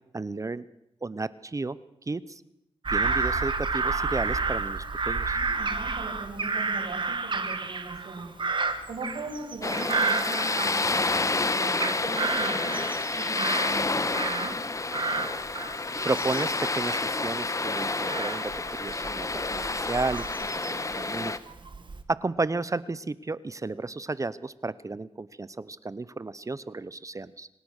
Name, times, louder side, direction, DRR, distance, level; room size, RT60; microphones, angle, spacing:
voice 1, 0.1-0.6 1.0-1.8 2.1-2.4 2.9-5.4 16.0-18.5 18.8-20.2 20.5-21.3 22.1-27.5, right 3 dB, 30° right, 17 dB, 0.8 m, -32 dB
Bird vocalization bird call bird song / Crow, 2.8-11.2 11.5-14.6 14.9-20.9 21.5-22.0, right 4 dB, 50° right, 2.1 m, -31 dB
voice 2, 5.3-8.3 8.9-12.8 13.2-14.6, right 2 dB, 85° right, 0 dB, 7.7 m, -39 dB
sound 1, 9.6-21.4, left 3 dB, 30° left, 1.2 m, -29 dB
26.0 x 17.0 x 6.6 m, 0.83 s
cardioid pair, 75°, 10 cm